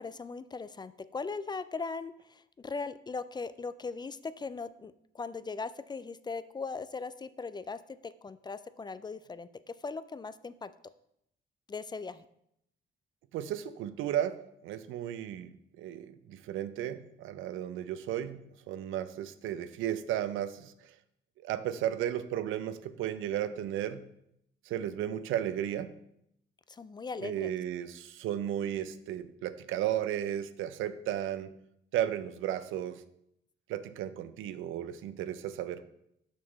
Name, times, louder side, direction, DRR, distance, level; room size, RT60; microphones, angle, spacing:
voice 1, 0.0-10.7 11.7-12.3 26.7-27.5, left 4 dB, 20° left, 14 dB, 0.3 m, -39 dB
voice 2, 13.3-20.9 21.4-24.1 24.7-25.9 27.2-31.5 31.9-33.0 33.7-35.8, right 11 dB, 90° right, 12 dB, 0.5 m, -34 dB
6.3 x 5.9 x 4.0 m, 0.75 s
cardioid pair, 90°, 20 cm